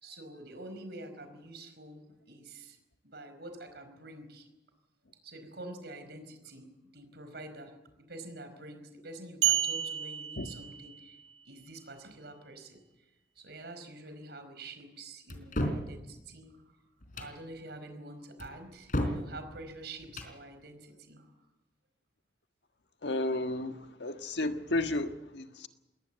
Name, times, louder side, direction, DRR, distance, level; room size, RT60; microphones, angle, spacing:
voice 1, 0.0-2.8 3.0-4.5 5.2-6.7 6.9-7.7 8.1-11.2 11.4-12.8 13.3-16.8 17.1-21.3, right 2 dB, 65° right, 4.9 m, -47 dB
sound 1, 9.4-11.3, right 12 dB, 85° right, 2.0 m, -31 dB
sound 2, 15.3-15.9 17.0-17.4 18.4-19.3 20.0-20.4, equal, 50° left, 3.9 m, -33 dB
voice 2, 23.0-25.7, left 2 dB, 75° left, 1.5 m, -33 dB
21.5 x 19.0 x 8.1 m
head